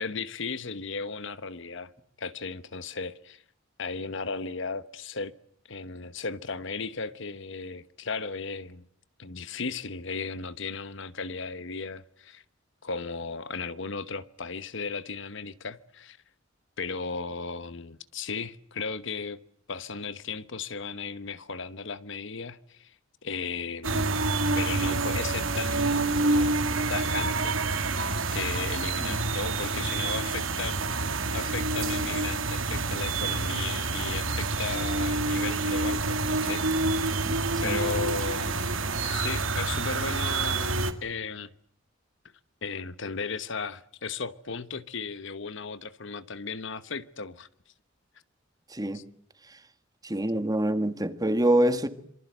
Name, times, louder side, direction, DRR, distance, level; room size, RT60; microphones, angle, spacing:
voice 1, 0.0-1.9 2.2-3.4 3.8-5.3 5.7-8.9 9.2-12.4 12.8-16.2 16.8-19.4 19.7-22.9 23.2-24.2 24.5-26.6 26.9-27.5 28.3-30.8 31.3-37.2 37.6-40.7 41.0-41.5 42.6-47.5 48.9-49.0, left 4 dB, 65° left, 1.1 m, -35 dB
sound 1, 23.8-40.9, right 3 dB, 90° right, 2.2 m, -27 dB
voice 2, 37.2-37.8 48.7-49.0 50.0-51.9, right 1 dB, 20° right, 1.7 m, -26 dB
26.5 x 24.5 x 8.0 m
head